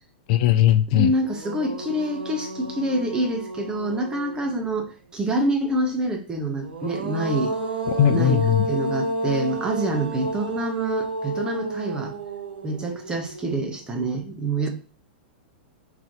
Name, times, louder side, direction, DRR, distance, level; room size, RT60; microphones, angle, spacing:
voice 1, 0.3-1.1 7.9-8.6, left 11 dB, 50° left, 10 dB, 0.3 m, -19 dB
sound 1, 0.7-0.8 1.2-4.8 6.5-13.8, right 1 dB, 85° right, 1.0 m, -31 dB
voice 2, 0.9-7.5 8.1-8.4 8.7-12.1 12.6-14.7, right 1 dB, 15° right, 3 dB, 0.9 m, -26 dB
3.9 x 2.9 x 2.9 m, 0.37 s
hypercardioid pair, 115°, 5 cm